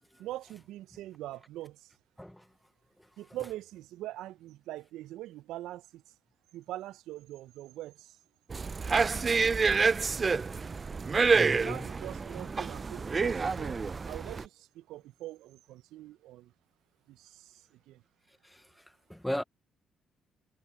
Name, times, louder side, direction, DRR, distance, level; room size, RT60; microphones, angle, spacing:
voice 1, 0.2-1.9 3.2-6.0 6.5-8.2 11.3-13.8 14.1-16.5 17.1-18.0, right 15 dB, 70° right, 1.2 m, -43 dB
sound 1, 8.5-14.4, right 4 dB, 40° right, 0.8 m, -28 dB
voice 2, 11.3-11.8 19.1-19.4, equal, 5° left, 1.5 m, -35 dB
hypercardioid pair, 45°, 0 cm